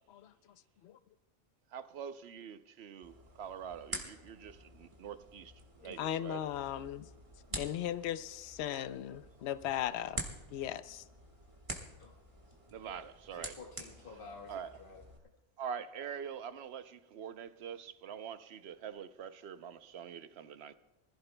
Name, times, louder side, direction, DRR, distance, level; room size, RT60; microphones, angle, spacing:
voice 1, 1.7-5.5 5.8-6.4 12.7-13.6 14.5-14.7 15.6-20.8, right 8 dB, 65° right, 0.9 m, -44 dB
sound 1, 3.0-15.2, right 1 dB, 25° right, 1.5 m, -48 dB
voice 2, 5.8-7.1 7.5-10.2 10.5-11.0, left 11 dB, 70° left, 0.8 m, -37 dB
voice 3, 13.3-15.0, left 4 dB, 50° left, 1.5 m, -51 dB
24.5 x 15.5 x 2.2 m
omnidirectional pair, 1.2 m